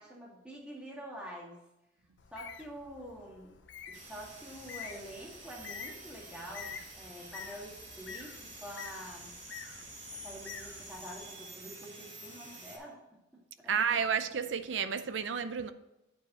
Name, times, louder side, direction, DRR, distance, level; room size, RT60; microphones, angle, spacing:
voice 1, 0.0-1.6 2.3-3.6 3.9-9.3 10.2-13.8, equal, 5° right, 2.1 m, -47 dB
Bird, 2.2-11.3, left 7 dB, 65° left, 0.6 m, -48 dB
sound 1, 3.9-12.8, right 1 dB, 40° right, 3.2 m, -49 dB
voice 2, 13.7-15.7, right 7 dB, 65° right, 0.6 m, -31 dB
9.4 x 4.9 x 5.0 m
head